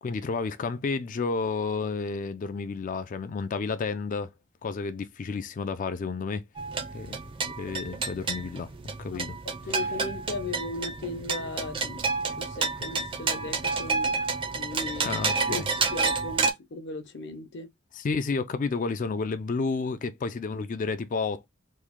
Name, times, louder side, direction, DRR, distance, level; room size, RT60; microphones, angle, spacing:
voice 1, 0.0-4.3 4.6-6.4 6.9-8.7 9.0-9.4 15.0-15.7 17.9-21.5, left 4 dB, 40° left, 0.4 m, -31 dB
sound 1, 6.6-16.5, right 4 dB, 25° right, 0.5 m, -30 dB
voice 2, 9.1-14.2 14.5-15.1 15.5-17.7, left 3 dB, 60° left, 0.8 m, -37 dB
3.1 x 2.4 x 3.5 m
head